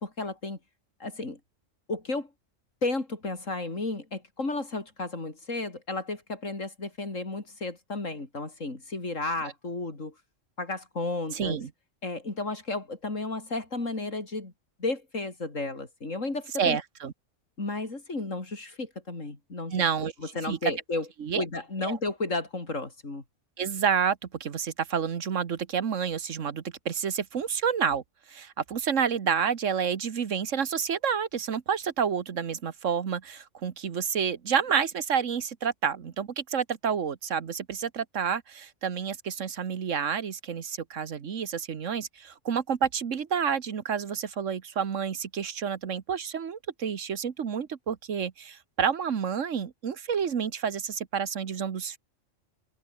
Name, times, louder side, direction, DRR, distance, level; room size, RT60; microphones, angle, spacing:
voice 1, 0.0-0.6 1.0-1.4 1.9-2.3 2.8-10.1 10.6-11.6 12.0-14.5 14.8-16.8 17.6-19.9 20.2-21.1 21.4-23.2, left 2 dB, 80° left, 4.5 m, -33 dB
voice 2, 11.3-11.7 16.6-17.1 19.7-20.1 20.4-20.7 21.2-21.4 21.8-22.0 23.6-28.0 28.3-52.0, right 7 dB, 75° right, 1.6 m, -29 dB
omnidirectional pair, 1.3 m